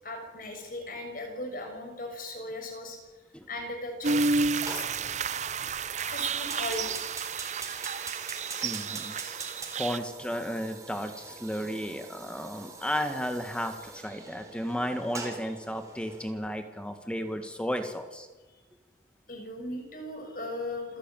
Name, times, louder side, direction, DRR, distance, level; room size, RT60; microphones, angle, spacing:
voice 1, 0.0-3.0 3.5-4.8 6.1-7.0 7.6-7.7 18.5-18.6 19.3-21.0, left 2 dB, 50° left, 4 dB, 6.9 m, -38 dB
sound 1, 4.0-10.0, right 4 dB, 40° right, 0.7 m, -31 dB
Fire, 4.6-16.3, right 3 dB, 20° right, 4.2 m, -44 dB
voice 2, 8.6-9.2 9.5-18.3, equal, 5° left, 7 dB, 1.7 m, -34 dB
27.5 x 15.5 x 9.1 m, 1.2 s
head